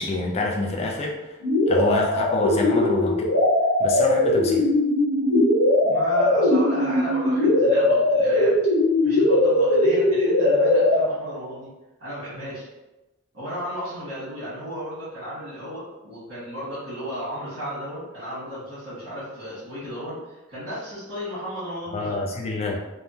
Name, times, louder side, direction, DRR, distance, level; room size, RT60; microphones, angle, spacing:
voice 1, 0.0-1.4 1.7-3.3 3.8-4.7 21.9-22.8, left 2 dB, 30° left, -1 dB, 0.3 m, -27 dB
sound 1, 1.4-11.0, left 1 dB, 80° left, 1.0 m, -20 dB
voice 2, 5.8-8.6 9.0-11.7 12.0-12.7 13.3-20.2 20.5-22.2, equal, 50° right, -12 dB, 1.4 m, -33 dB
3.5 x 2.1 x 2.7 m, 1.1 s
head